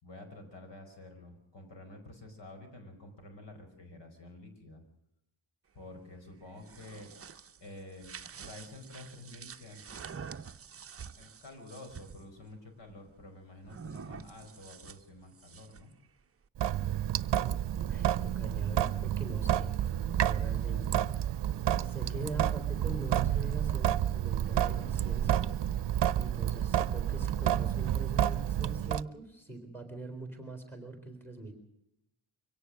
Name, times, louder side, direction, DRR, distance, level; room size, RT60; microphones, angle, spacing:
voice 1, 0.0-4.8 5.7-7.1 7.6-9.8 11.2-15.9, left 2 dB, 65° left, 5 dB, 5.3 m, -49 dB
sound 1, 6.5-12.2 13.6-15.9, right 6 dB, 30° right, 0.7 m, -47 dB
Sink (filling or washing) / Drip, 16.6-29.0, right 11 dB, 65° right, 0.7 m, -30 dB
voice 2, 17.8-21.3 21.8-25.5 26.2-31.5, right 2 dB, 5° left, 6 dB, 3.8 m, -42 dB
24.0 x 17.5 x 6.5 m, 0.83 s
wide cardioid pair, 140°, 46 cm